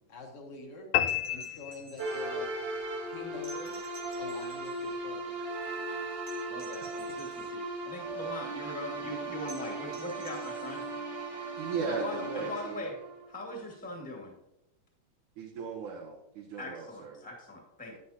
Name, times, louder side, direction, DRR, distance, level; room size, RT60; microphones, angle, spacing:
voice 1, 0.1-0.9 1.3-2.5 3.1-3.8 4.2-5.4, left 2 dB, 60° left, 1 dB, 1.9 m, -46 dB
sound 1, 0.9-2.5, left 13 dB, 80° left, 1.8 m, -31 dB
sound 2, 1.0-2.3 3.4-5.0 6.3-7.5 9.5-10.9 12.7-12.8, right 4 dB, 65° right, 0.9 m, -52 dB
sound 3, 2.0-13.8, right 2 dB, 30° right, 1.2 m, -37 dB
voice 2, 6.5-10.8 11.8-13.0 13.3-14.4 16.6-17.9, left 1 dB, 5° left, 0 dB, 1.4 m, -41 dB
voice 3, 11.6-12.9 15.4-17.2 17.9-18.0, right 5 dB, 85° right, -1 dB, 2.5 m, -37 dB
9.7 x 9.3 x 2.8 m, 0.85 s
omnidirectional pair, 3.4 m